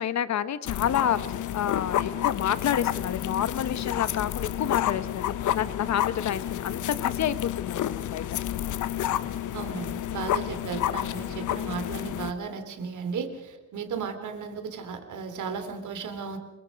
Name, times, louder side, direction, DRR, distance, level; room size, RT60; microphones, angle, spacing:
voice 1, 0.0-8.2, left 10 dB, 65° left, 14 dB, 1.1 m, -29 dB
sound 1, 0.7-12.3, left 12 dB, 85° left, 1.0 m, -30 dB
voice 2, 9.5-16.4, right 5 dB, 75° right, 8 dB, 3.1 m, -35 dB
27.5 x 23.5 x 5.3 m, 1.0 s
cardioid pair, 140°, 30 cm